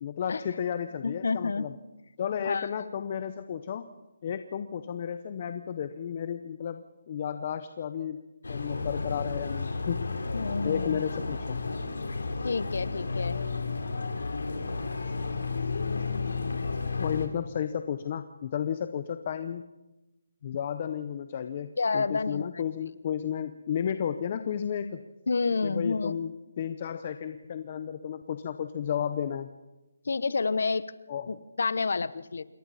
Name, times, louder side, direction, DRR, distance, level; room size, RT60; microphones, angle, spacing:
voice 1, 0.0-1.7 2.2-3.9 4.2-8.2 8.5-10.1 10.6-11.6 17.0-19.6 20.4-25.0 25.6-29.5 31.1-31.3, left 8 dB, 30° left, 10 dB, 0.8 m, -33 dB
voice 2, 1.0-1.7 2.4-2.7 10.3-11.0 12.4-13.5 21.8-22.5 25.3-26.2 30.0-30.9 31.3-32.4, left 4 dB, 65° left, 16 dB, 1.0 m, -29 dB
sound 1, 8.4-17.3, left 4 dB, 85° left, 3.5 m, -32 dB
27.0 x 23.0 x 4.2 m, 1.0 s
hypercardioid pair, 170°, 0 cm